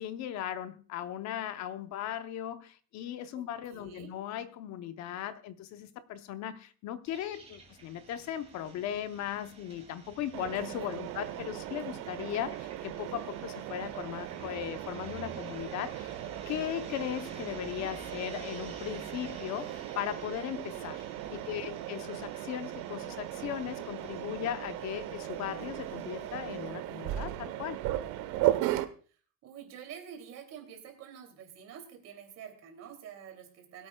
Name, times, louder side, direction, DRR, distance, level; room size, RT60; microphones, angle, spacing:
voice 1, 0.0-16.2 16.5-21.0 21.3-27.8, left 11 dB, 45° left, 10 dB, 0.9 m, -38 dB
voice 2, 3.3-4.1 10.7-10.9 21.3-21.7 29.4-33.9, right 8 dB, 40° right, 4 dB, 2.9 m, -48 dB
sound 1, 7.1-26.7, right 3 dB, 15° right, 2.5 m, -51 dB
Mechanisms, 10.3-28.8, right 14 dB, 65° right, 1.1 m, -37 dB
22.0 x 8.8 x 2.3 m, 0.42 s
cardioid pair, 155°, 38 cm